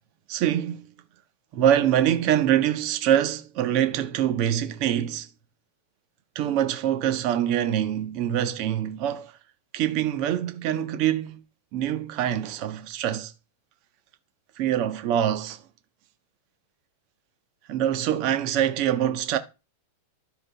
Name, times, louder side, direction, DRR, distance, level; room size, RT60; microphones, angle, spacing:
voice 1, 0.3-0.9 1.5-5.3 6.3-9.3 9.7-11.4 11.7-13.3 14.6-15.6 17.7-19.4, right 10 dB, 40° right, 1.3 m, -24 dB
12.5 x 5.0 x 5.1 m
supercardioid pair, 155°, 0 cm